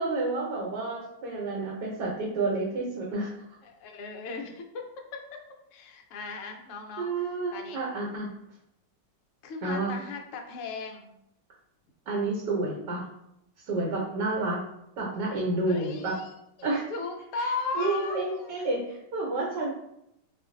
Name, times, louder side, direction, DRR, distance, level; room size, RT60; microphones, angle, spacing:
voice 1, 0.0-3.3 7.0-8.3 9.6-10.0 12.1-13.1 13.7-14.6 15.0-16.1 16.6-16.8 17.4-19.7, right 2 dB, 75° right, -3 dB, 1.3 m, -30 dB
voice 2, 3.6-4.8 5.7-7.1 7.5-7.8 9.4-11.1 15.7-16.3 16.6-18.6, left 4 dB, 80° left, 3 dB, 0.7 m, -36 dB
2.5 x 2.5 x 3.6 m, 0.81 s
omnidirectional pair, 1.9 m